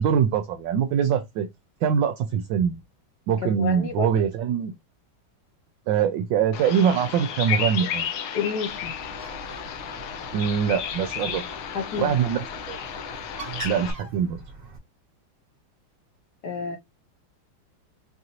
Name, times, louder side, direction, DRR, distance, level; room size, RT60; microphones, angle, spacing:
voice 1, 0.0-1.5 1.8-2.8 3.3-4.7 5.9-8.0 10.3-11.4 12.0-12.8 13.6-14.4, right 8 dB, 75° right, 1.2 m, -23 dB
voice 2, 3.4-4.2 8.3-8.9 11.7-12.2 16.4-16.8, left 6 dB, 70° left, 1.0 m, -30 dB
Bird vocalization bird call bird song, 6.5-13.9, left 8 dB, 85° left, 1.6 m, -33 dB
Bird, 8.7-14.8, right 4 dB, 30° right, 1.1 m, -42 dB
4.6 x 2.6 x 2.9 m
omnidirectional pair, 2.3 m